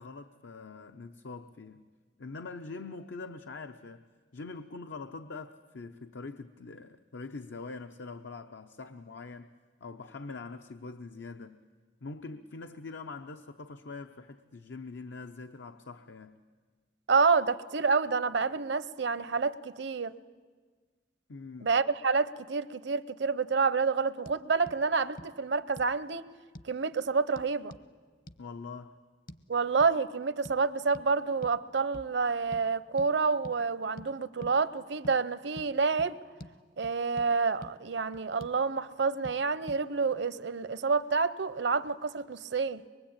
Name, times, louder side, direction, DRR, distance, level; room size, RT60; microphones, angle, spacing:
voice 1, 0.0-1.8 2.2-4.0 4.3-9.5 9.8-11.6 12.0-16.4 21.3-21.7 28.4-29.0, left 3 dB, 75° left, 0.7 m, -43 dB
voice 2, 17.1-20.1 21.6-26.3 26.6-27.7 29.5-36.2 36.8-42.8, right 4 dB, 65° right, 0.7 m, -28 dB
sound 1, 24.2-24.4 24.7-24.8 25.2-25.3 25.8-26.0 26.5-26.7 27.4-27.9 28.3-28.4 29.3-29.4 29.8-29.9 30.4-30.6 30.9-31.1 31.4-31.6 31.9-32.1 32.5-32.6 33.0-33.1 33.4-33.6 34.0-34.1 34.4-34.6 35.0-35.2 35.6-35.7 36.0-36.1 36.4-36.5 36.8-37.3 37.6-37.7 38.1-38.6 39.2-39.4 39.7-39.8, equal, 50° left, 1.0 m, -46 dB
23.5 x 22.0 x 8.8 m
head